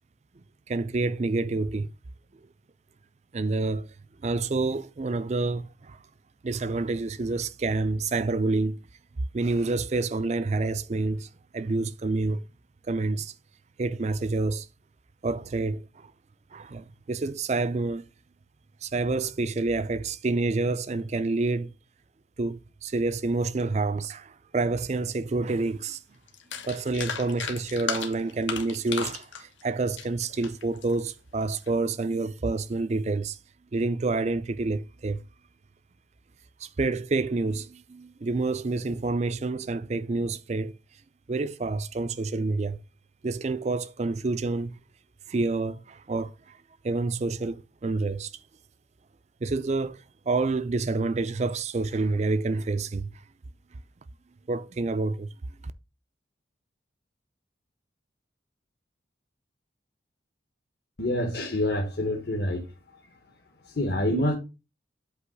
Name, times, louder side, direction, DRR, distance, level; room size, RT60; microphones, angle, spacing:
voice 1, 0.7-1.9 3.3-3.9 4.2-6.0 6.4-8.8 9.3-12.4 12.9-13.3 13.8-14.7 15.2-16.1 16.5-18.1 18.8-21.7 22.4-26.0 26.7-33.4 33.7-35.2 36.6-40.7 41.3-42.8 43.2-44.8 45.3-46.3 46.8-48.3 49.4-53.1 54.5-55.3, right 3 dB, 35° right, 0.4 m, -28 dB
sound 1, 25.9-26.0 26.3-30.9 31.4-31.7, left 6 dB, 80° left, 1.2 m, -35 dB
voice 2, 61.0-62.6 63.6-64.3, left 1 dB, 55° left, 1.1 m, -26 dB
8.1 x 3.1 x 6.1 m
head